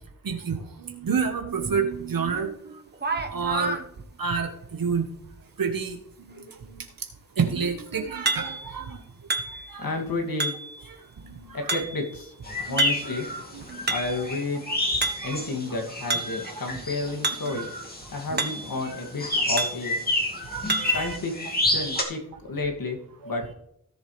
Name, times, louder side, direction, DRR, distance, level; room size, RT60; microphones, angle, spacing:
voice 1, 0.2-2.8 3.1-3.8 4.2-5.0 5.6-6.0 6.2-6.9 7.4-9.0 9.7-9.9 11.2-11.7 12.5-12.9 13.5-13.9 14.7-14.8 15.0-15.5 16.1-16.8 17.4-17.6 18.3-18.4 20.4-21.2 23.2-23.3, right 5 dB, 75° right, 4 dB, 1.4 m, -30 dB
sound 1, 2.4-2.5 2.9-3.8 8.3-8.8 9.3-9.8 10.4-10.8 11.7-12.2 12.8-13.2 13.6-14.3 15.0-15.4 16.1-16.4 17.2-17.5 17.8-17.9 18.4-18.8 19.6-19.9 20.7-21.1, right 3 dB, 30° right, 1.3 m, -29 dB
voice 2, 9.8-10.6 11.5-12.3 12.6-13.3 13.9-14.6 15.2-17.7 18.1-20.0 20.9-23.0 23.2-23.4, left 3 dB, 70° left, 1 dB, 2.6 m, -31 dB
sound 2, 12.4-22.0, left 1 dB, 25° left, 2.5 m, -29 dB
17.0 x 7.4 x 3.4 m, 0.75 s
wide cardioid pair, 95°, 35 cm